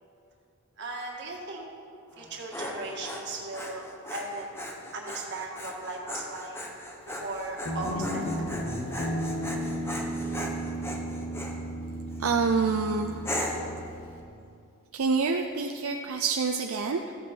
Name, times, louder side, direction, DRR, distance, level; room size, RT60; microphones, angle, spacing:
voice 1, 0.8-1.7 2.2-3.8 4.1-4.7 4.9-6.6 7.1-8.2, right 2 dB, 55° right, -1 dB, 1.8 m, -37 dB
Dog, 2.1-11.6 12.1-12.5 13.2-13.7, left 1 dB, 10° left, 0.9 m, -38 dB
Guitar, 7.6-14.2, equal, 70° left, 1.6 m, -34 dB
voice 2, 12.2-13.3 14.9-17.1, right 4 dB, 80° right, 4 dB, 0.5 m, -27 dB
14.0 x 8.1 x 4.5 m, 2.5 s
head